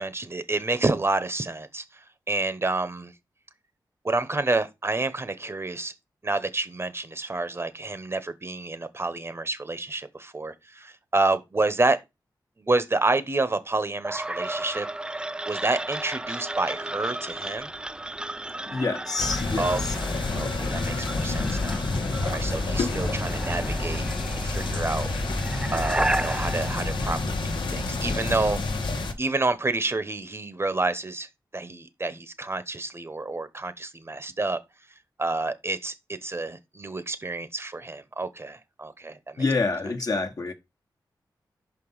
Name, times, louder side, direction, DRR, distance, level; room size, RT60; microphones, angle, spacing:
voice 1, 0.0-1.8 2.3-3.1 4.0-5.9 6.2-12.0 12.6-14.9 15.5-17.7 19.6-21.8 22.2-24.0 24.4-25.1 25.7-28.6 29.2-31.3 31.5-34.6 35.2-39.4, right 2 dB, 30° right, 1.0 m, -29 dB
sound 1, 14.0-27.9, right 1 dB, 10° right, 0.3 m, -33 dB
voice 2, 18.7-19.9 39.4-40.5, left 3 dB, 50° left, 1.2 m, -27 dB
sound 2, 19.2-29.1, left 3 dB, 90° left, 1.2 m, -29 dB
5.5 x 5.0 x 5.5 m
wide cardioid pair, 75°, 8 cm